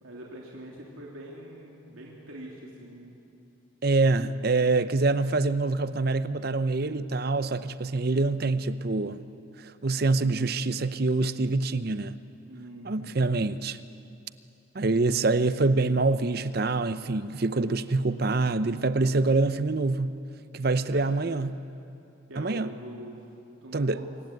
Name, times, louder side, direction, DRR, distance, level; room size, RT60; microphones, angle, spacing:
voice 1, 0.0-3.2 12.4-13.2 20.9-21.1 22.3-23.2 23.6-24.1, right 1 dB, 90° right, 3.1 m, -43 dB
voice 2, 3.8-9.3 9.6-12.1 12.8-13.8 14.7-20.1 20.5-21.5 22.4-22.7 23.7-24.0, right 3 dB, 50° right, 0.7 m, -25 dB
26.5 x 15.5 x 9.5 m
head